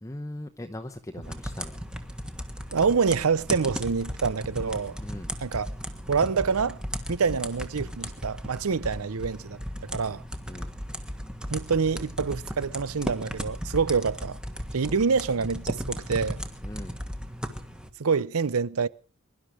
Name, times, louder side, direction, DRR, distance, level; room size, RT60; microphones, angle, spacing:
voice 1, 0.0-1.8 5.0-5.3 7.3-7.4 10.5-10.7 16.6-17.0, left 1 dB, 15° left, 0.9 m, -40 dB
sound 1, 1.2-17.9, equal, 5° right, 1.5 m, -36 dB
voice 2, 2.7-5.0 5.4-5.7 6.1-6.8 7.1-10.2 11.5-14.4 14.7-16.4 18.0-18.9, right 5 dB, 90° right, 0.7 m, -26 dB
22.5 x 12.0 x 5.1 m
head